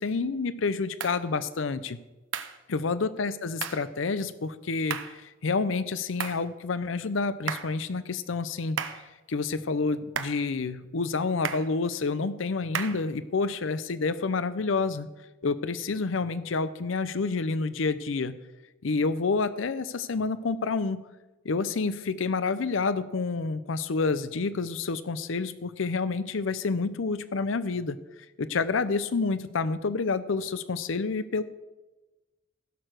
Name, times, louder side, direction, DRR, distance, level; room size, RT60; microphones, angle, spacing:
voice 1, 0.0-2.0 2.7-8.8 9.3-15.1 15.4-18.4 18.8-21.0 21.4-28.0 28.4-31.4, left 4 dB, 70° left, 14 dB, 0.6 m, -28 dB
sound 1, 1.0-1.2 2.3-2.6 3.6-3.9 4.9-5.2 6.2-6.5 7.5-7.8 8.8-9.1 10.2-10.5 11.4-11.7 12.7-13.1, right 7 dB, 70° right, 0.9 m, -34 dB
16.0 x 6.7 x 6.2 m, 1.1 s
head